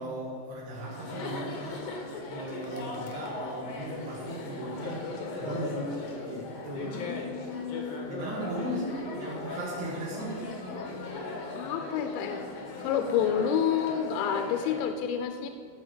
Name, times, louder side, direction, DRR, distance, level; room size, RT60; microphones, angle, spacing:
voice 1, 0.0-1.9 2.3-5.1 5.4-6.0 6.3-7.0 8.1-10.5, right 1 dB, 70° right, -5 dB, 3.4 m, -37 dB
Chatter, 0.8-14.9, left 3 dB, 70° left, 1.6 m, -38 dB
voice 2, 6.9-8.1 11.5-12.4 12.8-15.5, left 8 dB, 85° left, 7 dB, 2.9 m, -29 dB
13.5 x 5.2 x 7.3 m, 2.4 s
omnidirectional pair, 5.2 m